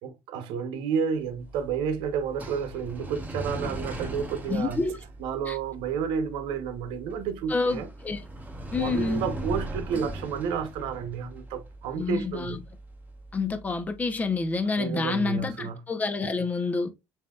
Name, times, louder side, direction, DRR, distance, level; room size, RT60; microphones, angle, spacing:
voice 1, 0.0-4.8 5.2-7.9 8.8-12.6 14.8-15.8, right 7 dB, 75° right, 0.9 m, -31 dB
sound 1, 1.3-14.4, right 1 dB, 15° right, 2.1 m, -39 dB
voice 2, 4.5-5.0 5.5-5.6 7.5-8.3 8.7-9.3 11.9-12.6 13.3-16.9, left 3 dB, 20° left, 0.7 m, -28 dB
7.2 x 2.8 x 2.3 m
cardioid pair, 145°, 9 cm